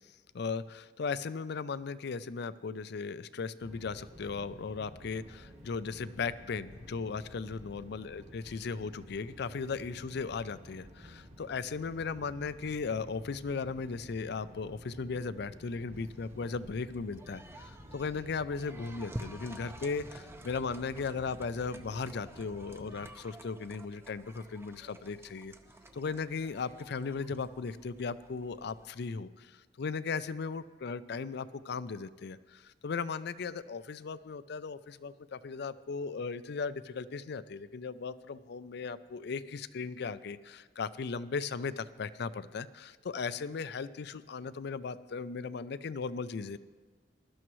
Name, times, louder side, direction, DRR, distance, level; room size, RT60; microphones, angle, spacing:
voice 1, 0.3-25.5 25.9-46.6, left 5 dB, 65° left, 15 dB, 0.4 m, -37 dB
sound 1, 3.6-23.1, equal, 40° right, 1.7 m, -52 dB
sound 2, 15.9-28.9, right 1 dB, 15° right, 0.6 m, -51 dB
20.0 x 12.0 x 3.1 m, 1.4 s
head